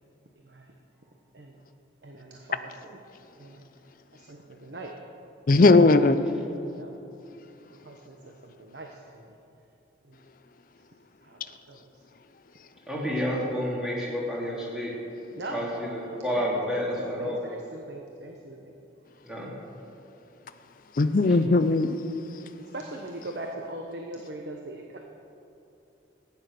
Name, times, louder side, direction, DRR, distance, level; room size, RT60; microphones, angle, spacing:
voice 1, 2.0-3.0 3.4-3.6 4.1-4.9 5.5-5.7 6.6-7.0 7.7-9.3 10.1-10.2 11.2-11.4 11.7-11.9 15.4-18.7 22.7-25.0, right 2 dB, 65° right, 2 dB, 1.1 m, -41 dB
voice 2, 5.5-6.2 21.0-21.9, left 3 dB, 45° left, 10 dB, 0.5 m, -18 dB
voice 3, 12.9-14.9 15.5-17.4 19.2-19.5, equal, 5° right, -6 dB, 2.9 m, -30 dB
15.0 x 9.8 x 6.6 m, 2.8 s
head